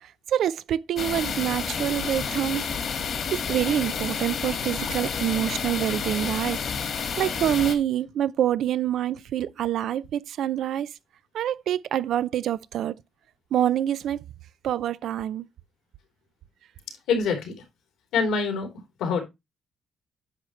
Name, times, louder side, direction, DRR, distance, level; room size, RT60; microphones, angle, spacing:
voice 1, 0.0-2.6 3.0-6.6 7.2-10.9 11.3-13.0 13.5-14.2 14.6-15.5, right 11 dB, 75° right, 0.4 m, -26 dB
sound 1, 1.0-7.7, left 6 dB, 60° left, 1.8 m, -30 dB
voice 2, 17.1-17.5 18.1-18.7 19.0-19.2, left 5 dB, 90° left, 3.2 m, -24 dB
9.8 x 6.3 x 3.1 m
cardioid pair, 90°, 0 cm